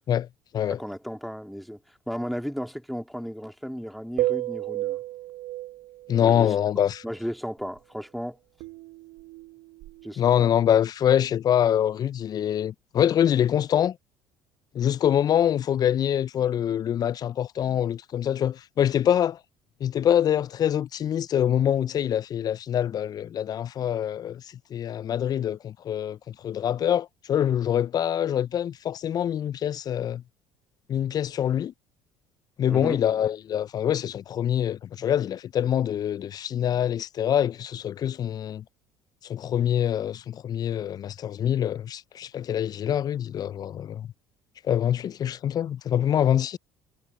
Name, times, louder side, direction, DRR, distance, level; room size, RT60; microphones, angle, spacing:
voice 1, 0.7-1.8 2.1-5.0 6.2-6.5 7.0-8.4 10.0-10.5 32.7-33.0, equal, ahead, 2.5 m, -34 dB
sound 1, 4.2-6.4 8.6-10.1, right 16 dB, 65° right, 0.8 m, -32 dB
voice 2, 6.1-7.0 10.2-14.0 14.7-19.4 19.8-24.4 24.7-30.2 30.9-31.7 32.6-38.6 39.2-44.1 44.6-46.6, left 10 dB, 45° left, 0.5 m, -25 dB
hypercardioid pair, 65°, 10 cm